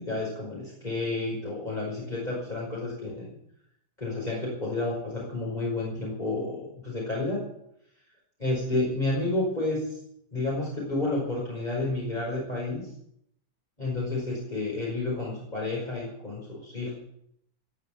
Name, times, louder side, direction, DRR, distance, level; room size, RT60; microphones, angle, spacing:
voice 1, 0.0-3.3 4.0-7.4 8.4-10.0 10.3-12.8 13.8-16.9, left 2 dB, 20° left, -5 dB, 5.6 m, -30 dB
19.0 x 8.6 x 8.7 m, 0.73 s
omnidirectional pair, 2.2 m